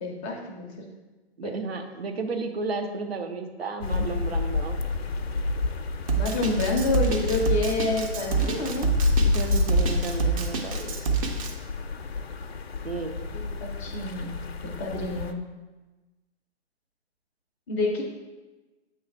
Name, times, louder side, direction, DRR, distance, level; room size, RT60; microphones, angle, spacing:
voice 1, 0.0-0.9 1.4-1.6 6.1-8.9 13.3-14.3 14.6-15.4 17.7-18.0, left 2 dB, 15° left, 0 dB, 0.5 m, -28 dB
voice 2, 1.4-4.8 9.2-11.0 12.8-13.2, right 3 dB, 65° right, 5 dB, 0.8 m, -33 dB
sound 1, 3.8-15.3, left 4 dB, 70° left, 0.5 m, -29 dB
Drum kit, 6.1-11.5, right 5 dB, 35° right, 0.6 m, -26 dB
7.8 x 3.2 x 4.6 m, 1.2 s
figure-of-eight pair, 125°, 32 cm